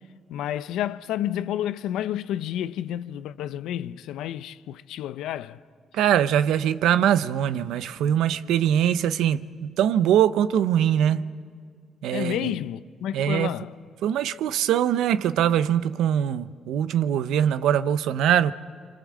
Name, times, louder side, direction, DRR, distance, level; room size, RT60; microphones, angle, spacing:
voice 1, 0.3-5.6 12.1-13.7, left 11 dB, 90° left, 0.6 m, -30 dB
voice 2, 5.9-11.3 12.0-12.6 13.1-13.5 14.0-18.5, right 10 dB, 85° right, 0.7 m, -22 dB
25.5 x 25.0 x 7.5 m
cardioid pair, 90°, 0 cm